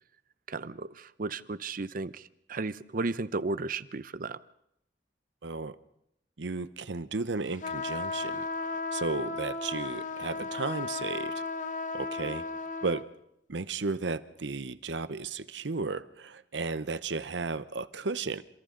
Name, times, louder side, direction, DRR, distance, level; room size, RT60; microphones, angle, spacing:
voice 1, 0.5-4.4, right 3 dB, 55° right, 0.7 m, -34 dB
voice 2, 5.4-5.8 6.4-11.4 11.9-12.5 12.8-13.1 13.5-18.4, right 4 dB, 90° right, 0.9 m, -34 dB
sound 1, 7.6-13.1, left 3 dB, 45° left, 1.1 m, -35 dB
29.0 x 26.5 x 3.9 m
head